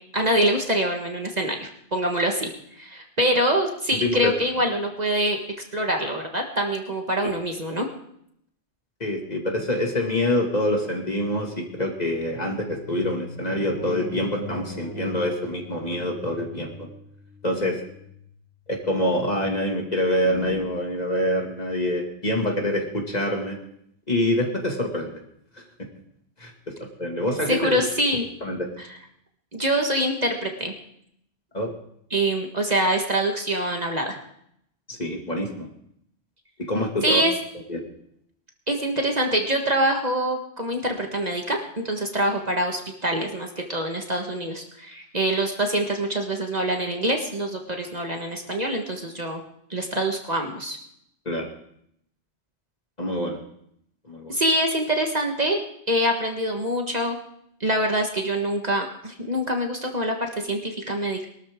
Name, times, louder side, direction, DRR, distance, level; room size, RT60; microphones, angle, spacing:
voice 1, 0.1-5.4 5.7-7.9 27.5-28.2 29.5-30.7 32.1-34.1 37.0-37.3 38.7-41.6 41.8-49.4 49.7-50.8 54.3-55.6 55.9-57.2 57.6-61.2, right 1 dB, 35° right, 2 dB, 1.5 m, -25 dB
voice 2, 3.9-4.3 9.0-16.9 17.4-17.8 18.7-23.6 24.1-25.1 26.4-27.8 28.4-28.6 31.5-31.7 34.9-35.7 36.6-37.2 37.7-37.8 51.3-51.5 53.0-53.4 54.1-54.4, left 1 dB, 35° left, 1 dB, 2.2 m, -26 dB
sound 1, 12.6-18.8 20.1-20.6, left 1 dB, 85° left, 3.0 m, -40 dB
22.0 x 13.0 x 3.6 m, 0.73 s
omnidirectional pair, 1.2 m